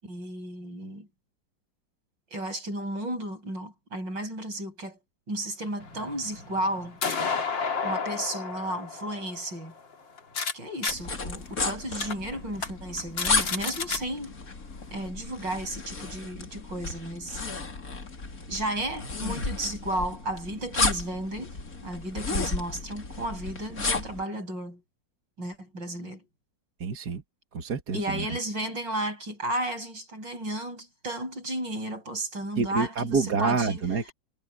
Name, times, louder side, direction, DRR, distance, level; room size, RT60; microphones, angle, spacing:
voice 1, 0.0-1.1 2.3-5.0 5.3-7.0 7.8-9.7 10.5-14.3 14.9-17.4 18.5-24.8 25.4-26.2 27.9-33.7, right 1 dB, 75° right, 8.0 m, -33 dB
sound 1, 5.8-10.5 10.8-10.9 11.5-11.6 12.0-12.1 12.5-12.7 13.0-14.0, left 5 dB, 80° left, 3.3 m, -32 dB
sound 2, 10.9-24.2, left 3 dB, 50° left, 3.1 m, -33 dB
voice 2, 26.8-27.2 27.5-28.3 32.6-34.1, right 5 dB, 60° right, 2.3 m, -27 dB
omnidirectional pair, 2.0 m